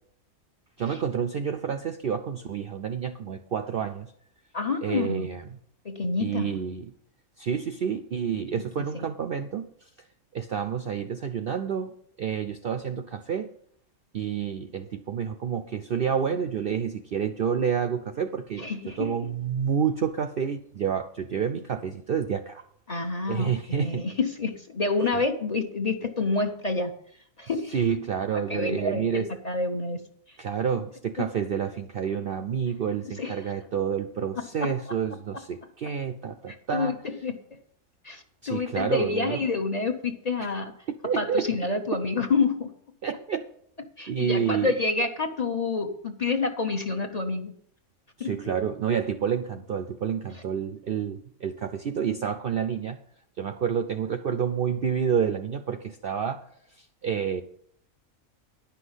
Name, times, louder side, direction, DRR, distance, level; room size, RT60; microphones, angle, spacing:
voice 1, 0.8-4.1 4.8-5.4 6.2-6.9 7.4-9.7 10.3-13.5 14.1-18.7 19.0-22.6 23.3-24.1 25.1-25.2 27.7-29.3 30.4-36.9 38.4-39.4 41.0-41.5 43.0-43.5 44.1-44.7 48.2-53.0 53.4-56.4 56.8-57.4, right 7 dB, 60° right, 9 dB, 0.6 m, -29 dB
voice 2, 4.5-5.3 5.8-6.6 8.5-9.1 18.6-19.3 22.9-26.9 27.4-27.8 28.3-30.0 30.3-30.4 33.0-33.3 34.4-35.0 36.5-37.6 38.0-40.7 41.2-42.7 44.0-47.5 48.2-48.5, left 3 dB, 35° left, 4 dB, 0.8 m, -28 dB
10.5 x 5.8 x 8.0 m, 0.67 s
omnidirectional pair, 1.5 m